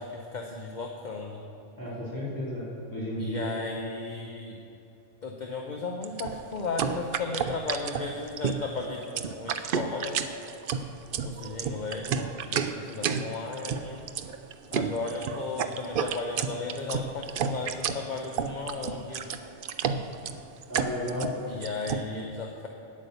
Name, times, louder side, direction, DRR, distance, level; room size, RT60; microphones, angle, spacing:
voice 1, 0.0-1.4 3.2-4.6 5.2-10.3 11.2-14.0 14.7-19.3 21.5-22.7, left 3 dB, 45° left, 2 dB, 0.8 m, -35 dB
voice 2, 1.8-3.5 20.7-21.3, left 1 dB, 15° left, -9 dB, 3.0 m, -33 dB
sound 1, 6.0-22.0, right 7 dB, 60° right, 0.6 m, -31 dB
9.6 x 8.5 x 6.7 m, 2.9 s
omnidirectional pair, 1.2 m